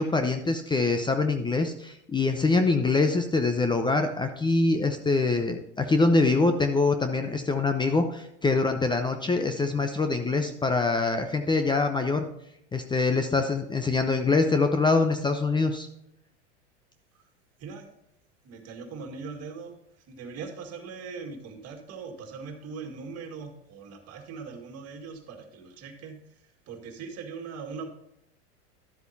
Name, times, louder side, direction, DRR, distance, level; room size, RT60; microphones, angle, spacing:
voice 1, 0.0-12.2 12.7-15.9, left 3 dB, 15° left, 7 dB, 0.7 m, -24 dB
voice 2, 17.6-17.9 18.4-19.8 20.1-26.2 26.7-27.9, right 5 dB, 45° right, 4 dB, 2.0 m, -40 dB
12.5 x 8.0 x 2.7 m, 0.80 s
hypercardioid pair, 100°, 35 cm